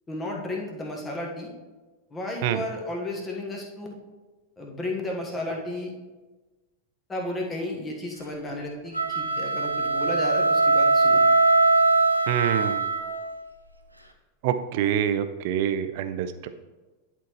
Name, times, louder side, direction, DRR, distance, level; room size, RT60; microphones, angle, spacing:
voice 1, 0.1-1.5 2.1-4.0 4.6-5.9 7.1-11.2, left 1 dB, 15° left, 0 dB, 1.4 m, -33 dB
sound 1, 8.9-13.4, right 3 dB, 90° right, 0.6 m, -21 dB
voice 2, 12.3-12.8 14.4-16.5, right 10 dB, 50° right, 10 dB, 0.5 m, -26 dB
10.5 x 4.5 x 3.1 m, 1.2 s
figure-of-eight pair, 90°, 0 cm